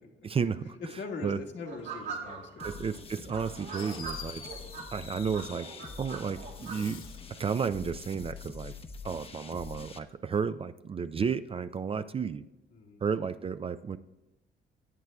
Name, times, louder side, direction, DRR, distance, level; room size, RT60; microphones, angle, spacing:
voice 1, 0.2-0.8 1.2-1.4 2.6-4.4 4.9-5.7 6.0-7.0 7.3-8.7 9.0-12.4 13.0-14.0, right 6 dB, 30° right, 12 dB, 0.3 m, -32 dB
voice 2, 1.0-3.3 12.7-13.0, left 4 dB, 65° left, 2 dB, 1.5 m, -42 dB
sound 1, 1.7-2.7 3.3-4.9 5.3-6.8, right 6 dB, 80° right, 2.6 m, -41 dB
sound 2, 2.6-10.0, left 5 dB, 30° left, 0.8 m, -45 dB
Fireworks, 3.7-6.2 6.5-7.4, left 7 dB, 90° left, 1.1 m, -46 dB
18.0 x 8.1 x 2.3 m, 0.98 s
cardioid pair, 90°, 20 cm